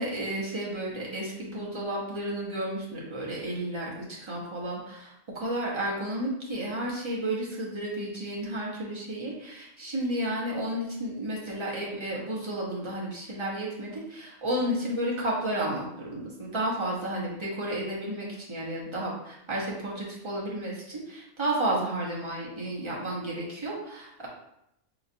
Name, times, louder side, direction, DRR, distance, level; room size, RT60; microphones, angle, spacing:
voice 1, 0.0-3.9 4.2-24.3, right 1 dB, 25° right, -5 dB, 0.9 m, -32 dB
3.9 x 3.0 x 2.6 m, 0.82 s
omnidirectional pair, 1.3 m